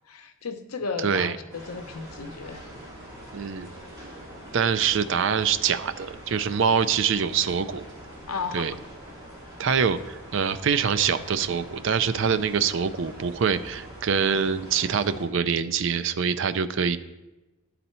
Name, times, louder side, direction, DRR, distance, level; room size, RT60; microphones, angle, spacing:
voice 1, 0.1-2.6 8.3-8.7, left 5 dB, 90° left, 8 dB, 0.7 m, -34 dB
voice 2, 1.0-1.4 3.3-3.7 4.5-7.8 8.5-8.7 9.6-17.0, right 6 dB, 55° right, 13 dB, 0.4 m, -24 dB
sound 1, 1.5-15.3, equal, 20° right, 2.3 m, -44 dB
12.0 x 4.1 x 4.3 m, 1.0 s
head